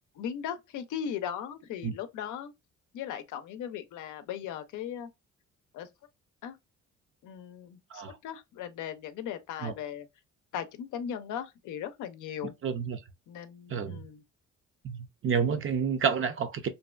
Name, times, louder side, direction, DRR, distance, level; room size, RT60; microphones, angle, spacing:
voice 1, 0.1-2.5 2.9-5.1 5.7-5.9 6.4-6.6 7.2-10.1 10.5-12.5 13.3-14.2, left 9 dB, 80° left, 0.5 m, -38 dB
voice 2, 12.6-13.0 13.7-14.0 14.8-16.7, right 6 dB, 45° right, 0.5 m, -29 dB
2.6 x 2.2 x 2.3 m
cardioid pair, 90°, 30 cm